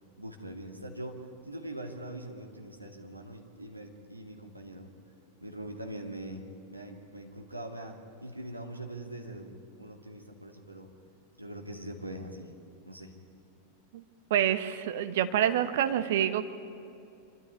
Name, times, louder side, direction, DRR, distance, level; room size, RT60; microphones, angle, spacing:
voice 1, 0.2-4.9 5.4-10.9 11.4-12.5 12.8-13.1, right 1 dB, 85° right, 2 dB, 2.2 m, -42 dB
voice 2, 14.3-16.4, right 10 dB, 55° right, 10 dB, 1.2 m, -27 dB
26.0 x 13.0 x 9.8 m, 2.6 s
figure-of-eight pair, 90°, 0 cm